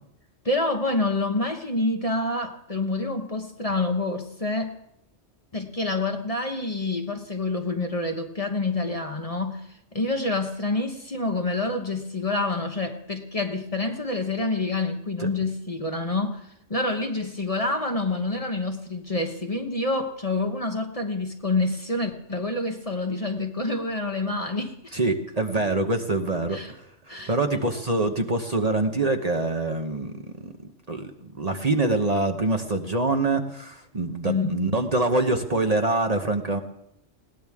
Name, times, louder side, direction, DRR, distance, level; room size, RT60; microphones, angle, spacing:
voice 1, 0.4-4.8 5.5-9.6 9.9-24.8 26.5-26.7 27.1-27.8 34.2-34.6, left 2 dB, 30° left, 4 dB, 1.2 m, -27 dB
voice 2, 24.9-36.6, right 2 dB, 35° right, 5 dB, 1.1 m, -25 dB
20.5 x 17.5 x 3.6 m, 0.79 s
omnidirectional pair, 1.3 m